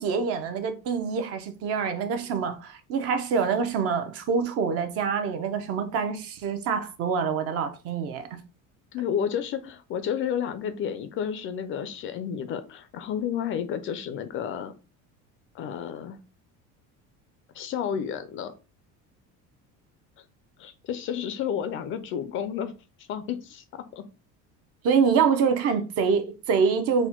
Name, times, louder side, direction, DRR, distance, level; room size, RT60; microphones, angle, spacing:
voice 1, 0.0-8.3 24.8-27.1, right 6 dB, 45° right, 0.7 m, -25 dB
voice 2, 8.9-14.7 15.5-16.2 17.5-18.5 20.6-22.7 23.1-24.0, left 8 dB, 40° left, 0.4 m, -31 dB
4.2 x 2.2 x 4.2 m
cardioid pair, 170°, 32 cm